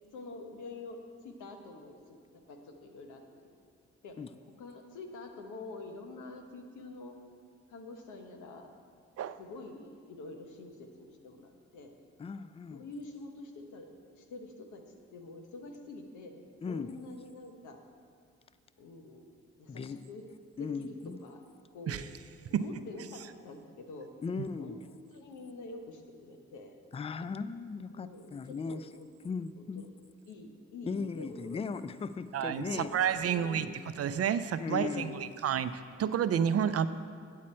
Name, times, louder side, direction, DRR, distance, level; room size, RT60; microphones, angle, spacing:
voice 1, 0.1-3.5 4.0-7.2 7.7-8.7 9.4-11.9 12.7-14.8 15.1-16.4 16.7-17.8 18.8-19.2 19.6-20.3 20.6-21.0 21.2-21.4 21.7-22.1 22.5-24.1 24.6-24.8 25.1-26.7 27.9-29.1 29.6-29.9 30.3-31.6 32.3-33.8 34.9-35.4, left 3 dB, 90° left, 4 dB, 0.9 m, -47 dB
voice 2, 12.2-12.8 16.6-16.9 19.7-20.0 20.6-21.2 24.2-24.7 26.9-28.9 29.2-29.9 30.8-32.9 34.6-35.2, left 5 dB, 20° left, 14 dB, 0.3 m, -37 dB
voice 3, 32.3-33.7 34.0-35.7 36.0-36.9, right 8 dB, 55° right, 13 dB, 0.5 m, -30 dB
8.6 x 8.5 x 4.3 m, 2.2 s
supercardioid pair, 55°, 29 cm